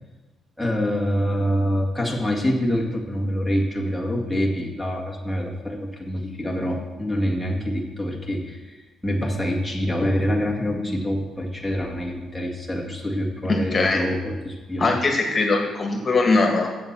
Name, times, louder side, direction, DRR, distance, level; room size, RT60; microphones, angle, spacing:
voice 1, 0.6-8.8 9.0-14.9, equal, 5° left, -3 dB, 1.9 m, -25 dB
voice 2, 13.5-14.0 14.8-16.7, left 3 dB, 35° left, 2 dB, 1.7 m, -21 dB
7.5 x 7.1 x 7.4 m, 1.2 s
cardioid pair, 90°, 0 cm